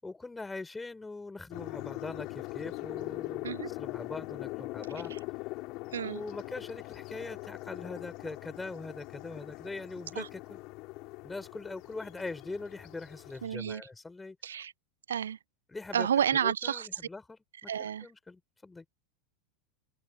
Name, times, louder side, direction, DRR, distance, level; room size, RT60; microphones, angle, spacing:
voice 1, 0.0-5.1 6.0-10.6 11.2-14.4 15.7-18.8, left 3 dB, 10° left, 5.6 m, -42 dB
sound 1, 1.5-13.5, left 23 dB, 45° left, 6.2 m, -42 dB
voice 2, 13.4-13.8 14.4-14.7 15.1-15.4 15.9-16.9 17.7-18.1, right 8 dB, 70° right, 0.8 m, -30 dB
open air
figure-of-eight pair, 85°, 0 cm